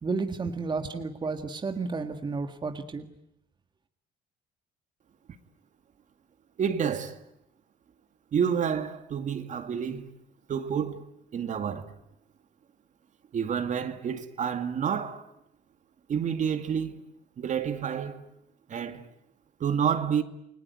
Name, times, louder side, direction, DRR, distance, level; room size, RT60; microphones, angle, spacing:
voice 1, 0.0-3.1, right 4 dB, 25° right, 1.8 m, -32 dB
voice 2, 6.6-7.2 8.3-10.1 10.5-11.9 13.3-15.3 16.1-17.0 17.4-18.2 18.7-19.1 19.6-20.2, right 7 dB, 45° right, 2.2 m, -29 dB
29.0 x 21.0 x 9.4 m
cardioid pair, 110°, 17 cm